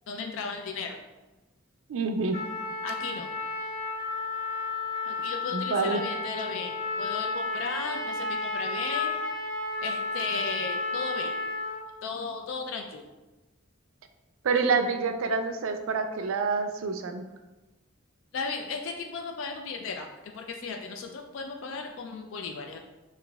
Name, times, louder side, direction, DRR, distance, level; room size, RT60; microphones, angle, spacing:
voice 1, 0.1-1.0 2.8-3.3 5.1-9.1 9.8-11.3 12.0-13.1 18.3-20.1 20.3-22.8, left 4 dB, 65° left, 3 dB, 0.3 m, -35 dB
voice 2, 1.9-2.4 5.5-6.0 14.4-17.2, right 4 dB, 75° right, 7 dB, 0.4 m, -27 dB
Trumpet, 2.3-11.8, left 3 dB, 40° left, 1.1 m, -32 dB
6.0 x 2.5 x 2.2 m, 1.1 s
head